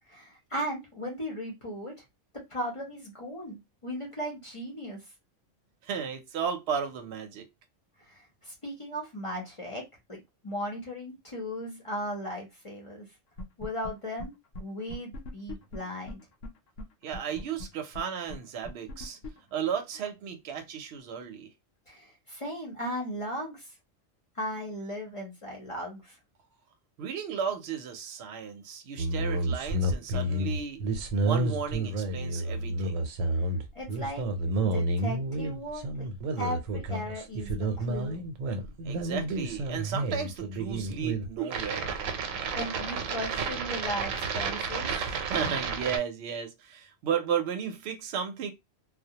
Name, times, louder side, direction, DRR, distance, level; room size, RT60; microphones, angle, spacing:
voice 1, 0.1-1.9 2.5-5.0 8.1-9.8 10.1-13.1 13.6-16.2 21.9-23.7 24.3-26.2 33.4-34.2 34.6-36.1 36.4-38.2 42.5-44.9, equal, 35° left, 0.6 m, -37 dB
voice 2, 5.8-7.4 17.0-19.2 19.5-21.5 27.0-30.8 31.2-33.1 38.8-41.9 45.0-48.5, right 7 dB, 65° right, 0.8 m, -34 dB
sound 1, 13.4-13.9 14.2-14.3 14.5-14.6 14.9-16.5 16.8-16.9 17.1-20.1, left 1 dB, 75° left, 0.9 m, -39 dB
sound 2, 29.0-46.0, right 2 dB, 85° right, 1.0 m, -30 dB
2.2 x 2.0 x 2.7 m
omnidirectional pair, 1.3 m